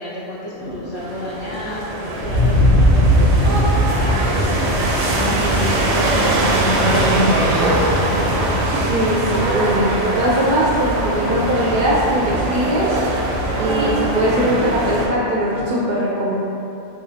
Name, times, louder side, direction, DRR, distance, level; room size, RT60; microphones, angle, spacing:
voice 1, 0.0-4.9 5.2-7.8, equal, 30° left, -8 dB, 0.5 m, -30 dB
sound 1, 0.5-15.7, equal, 25° right, 0.7 m, -35 dB
sound 2, 1.0-15.1, right 1 dB, 85° right, 0.9 m, -21 dB
sound 3, 2.2-6.8, equal, 90° left, 0.9 m, -18 dB
voice 2, 8.7-13.0 13.6-16.3, equal, 60° right, -7 dB, 0.6 m, -20 dB
3.9 x 2.7 x 2.7 m, 2.8 s
omnidirectional pair, 1.1 m